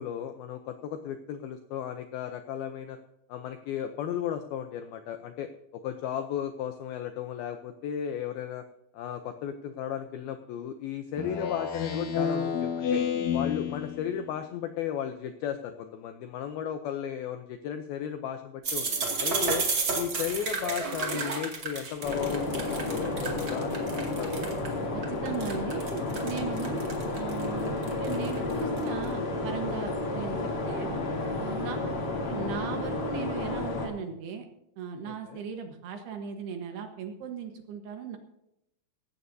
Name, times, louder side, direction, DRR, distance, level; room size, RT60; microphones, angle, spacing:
voice 1, 0.0-3.0 3.3-8.7 8.9-13.0 13.3-19.7 20.0-24.5 35.0-35.4, left 9 dB, 90° left, 7 dB, 2.1 m, -35 dB
Speech synthesizer, 11.2-14.2, left 7 dB, 60° left, 2.0 m, -30 dB
sound 1, 18.6-24.7 25.0-28.9, right 4 dB, 35° right, 2.1 m, -31 dB
sound 2, 22.0-33.9, left 2 dB, 40° left, 3.6 m, -31 dB
voice 2, 24.9-26.8 27.2-30.4 30.6-30.9 31.4-34.5 34.8-38.2, right 6 dB, 70° right, 5 dB, 3.1 m, -38 dB
18.0 x 15.5 x 2.7 m, 0.83 s
omnidirectional pair, 5.3 m